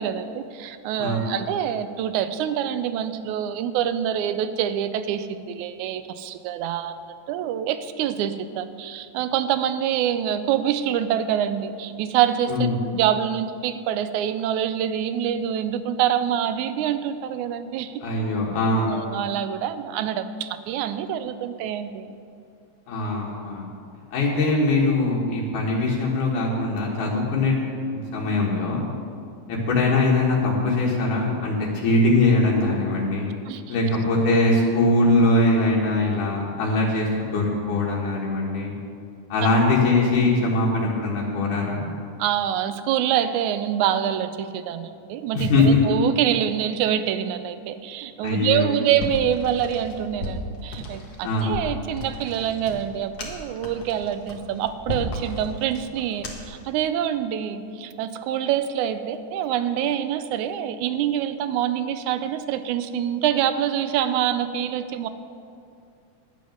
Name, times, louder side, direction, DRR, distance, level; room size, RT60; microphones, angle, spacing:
voice 1, 0.0-6.9 7.3-17.9 18.9-22.2 33.5-33.8 39.4-39.5 42.2-65.1, right 10 dB, 80° right, 12 dB, 2.0 m, -26 dB
voice 2, 18.0-19.0 22.9-23.7 24.1-27.6 27.9-28.8 29.5-33.3 33.7-38.7 39.3-41.8 45.3-45.8 48.2-48.8 51.2-51.5, left 2 dB, 85° left, -3 dB, 3.1 m, -21 dB
sound 1, 49.0-56.6, left 1 dB, 45° left, 1.8 m, -35 dB
10.5 x 9.3 x 6.4 m, 2.4 s
omnidirectional pair, 3.5 m